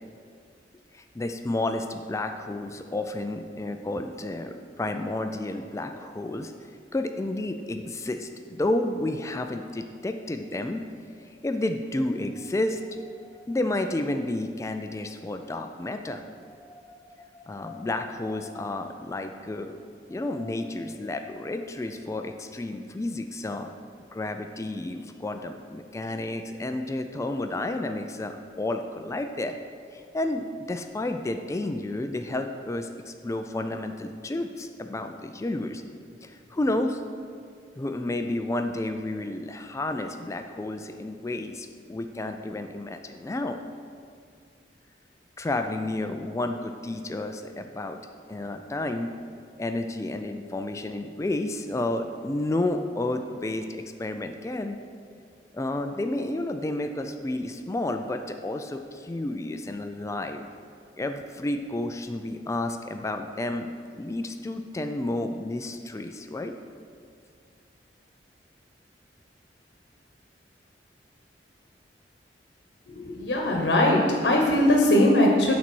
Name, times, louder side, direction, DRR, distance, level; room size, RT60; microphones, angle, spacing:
voice 1, 0.9-6.5 6.9-10.8 11.4-19.8 20.1-23.7 24.1-29.6 29.9-35.8 36.2-37.0 37.8-43.6 45.4-48.0 48.3-49.1 49.6-54.8 55.5-60.5 61.0-63.7 64.0-66.5, left 2 dB, 15° left, 6 dB, 0.3 m, -31 dB
voice 2, 73.0-75.5, left 1 dB, 70° left, 0 dB, 1.0 m, -20 dB
8.7 x 4.1 x 6.1 m, 2.2 s
head